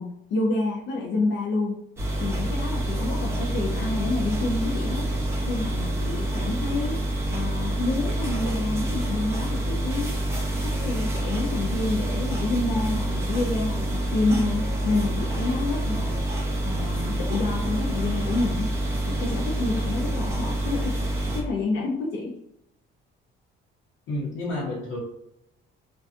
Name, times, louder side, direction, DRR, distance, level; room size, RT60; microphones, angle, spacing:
voice 1, 0.0-1.8 2.2-5.1 5.5-7.0 7.3-10.1 10.6-16.2 16.6-18.7 19.1-22.4, left 3 dB, 65° left, -2 dB, 0.4 m, -28 dB
sound 1, 2.0-21.4, right 1 dB, 15° right, 0.4 m, -27 dB
voice 2, 24.1-25.0, left 2 dB, 85° left, -8 dB, 0.9 m, -30 dB
2.4 x 2.3 x 2.4 m, 0.81 s
cardioid pair, 175°, 20 cm